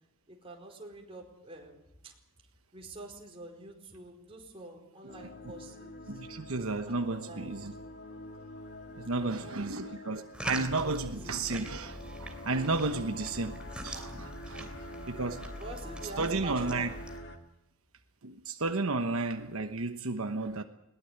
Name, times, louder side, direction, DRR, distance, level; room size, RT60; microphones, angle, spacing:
voice 1, 0.3-2.1 2.7-6.1 6.9-7.5 9.1-10.0 10.8-11.4 15.4-17.0, right 2 dB, 25° right, 4.6 m, -47 dB
sound 1, 5.1-17.4, left 1 dB, 55° left, 2.5 m, -45 dB
voice 2, 6.1-7.7 8.9-13.6 13.8-14.7 15.1-15.4 16.2-16.9 18.2-20.6, right 3 dB, 75° right, 1.1 m, -33 dB
sound 2, 10.3-17.2, right 1 dB, 5° right, 3.1 m, -44 dB
21.0 x 19.5 x 8.1 m
head